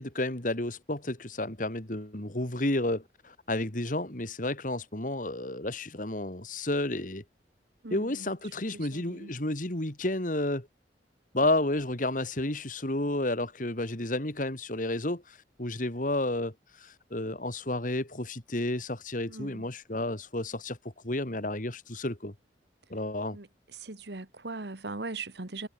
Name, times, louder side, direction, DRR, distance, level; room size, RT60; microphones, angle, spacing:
voice 1, 0.0-7.2 7.9-10.7 11.3-20.8 21.0-22.3 22.9-23.4, left 1 dB, 45° left, 2.5 m, -31 dB
voice 2, 7.8-8.3 8.7-9.3 19.3-19.6 23.3-23.5 23.8-25.7, right 3 dB, 70° right, 1.7 m, -40 dB
head